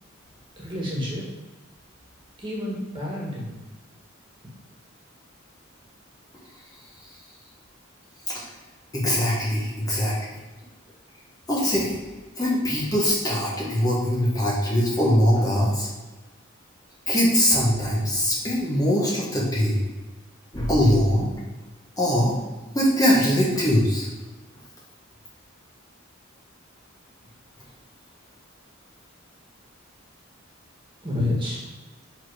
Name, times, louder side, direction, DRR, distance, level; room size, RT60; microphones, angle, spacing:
voice 1, 0.6-1.2 2.4-3.6 31.0-31.6, left 1 dB, 25° right, -4 dB, 1.9 m, -29 dB
voice 2, 8.9-10.2 11.5-11.9 12.4-15.9 17.1-19.9 20.5-21.3 22.0-22.4 22.7-24.1, equal, 20° left, -5 dB, 1.3 m, -22 dB
7.3 x 4.2 x 5.0 m, 1.2 s
head